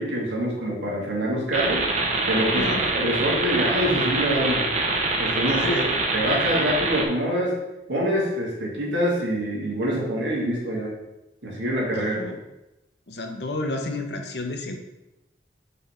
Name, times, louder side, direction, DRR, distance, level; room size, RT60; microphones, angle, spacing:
voice 1, 0.0-1.8 2.3-2.6 2.9-4.6 5.2-7.5 7.9-10.9 11.4-12.2, equal, 85° right, -3 dB, 2.0 m, -25 dB
sound 1, 1.5-7.1, right 3 dB, 40° right, 0.8 m, -25 dB
voice 2, 2.5-2.8 5.5-5.9 12.0-12.4 13.1-14.8, left 2 dB, 65° left, 4 dB, 0.8 m, -30 dB
5.5 x 3.4 x 5.6 m, 0.95 s
head